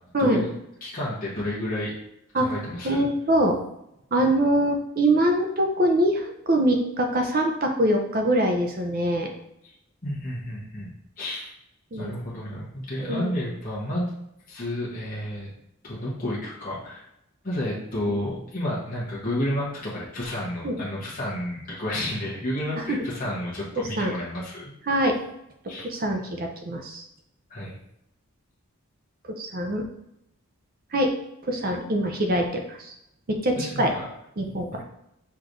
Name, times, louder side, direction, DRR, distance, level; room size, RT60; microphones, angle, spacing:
voice 1, 0.2-0.5 0.8-1.9 2.3-3.1 9.6-9.7 10.0-10.9 11.2-11.5 11.9-14.1 14.5-15.5 15.8-17.1 17.4-24.7 25.7-25.9 27.5-27.7 33.5-34.0, left 1 dB, 40° left, -6 dB, 1.1 m, -31 dB
voice 2, 2.8-3.6 4.1-9.3 11.9-12.1 13.0-13.3 20.6-20.8 22.9-23.0 24.0-24.1 24.9-25.2 25.8-27.0 29.4-29.8 30.9-31.1 31.5-32.9 33.3-33.9 34.4-34.8, right 1 dB, 40° right, 3 dB, 0.6 m, -23 dB
5.8 x 3.2 x 2.6 m, 0.80 s
head